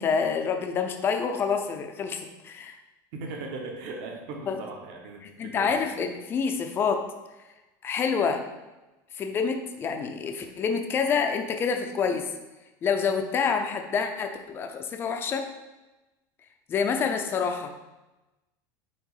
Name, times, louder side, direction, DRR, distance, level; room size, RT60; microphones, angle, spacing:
voice 1, 0.0-2.8 4.5-4.6 5.4-7.0 7.8-8.4 9.1-12.3 12.8-15.4 16.7-17.7, left 6 dB, 20° left, 5 dB, 0.6 m, -27 dB
voice 2, 3.1-5.8, right 3 dB, 50° right, 1 dB, 1.3 m, -38 dB
9.1 x 3.1 x 4.9 m, 1.1 s
supercardioid pair, 165°, 10 cm